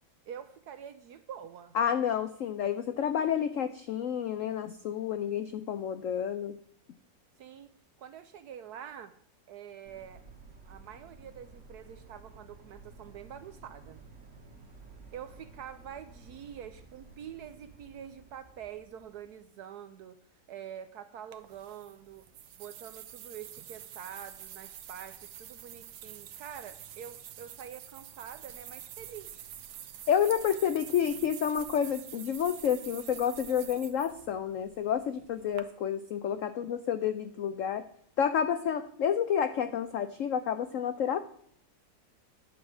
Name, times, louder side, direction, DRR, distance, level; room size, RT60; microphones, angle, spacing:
voice 1, 0.3-1.8 7.4-7.7 8.0-9.1 9.5-10.2 10.6-14.0 15.1-20.2 20.5-22.3 22.6-29.5, right 9 dB, 70° right, 10 dB, 1.0 m, -46 dB
voice 2, 1.7-6.6 30.1-37.9 38.2-41.2, left 8 dB, 85° left, 11 dB, 0.7 m, -29 dB
sound 1, 9.8-19.4, right 3 dB, 45° right, 1.5 m, -53 dB
sound 2, 21.3-35.6, right 10 dB, 85° right, 1.5 m, -47 dB
10.5 x 4.9 x 7.2 m, 0.66 s
omnidirectional pair, 2.0 m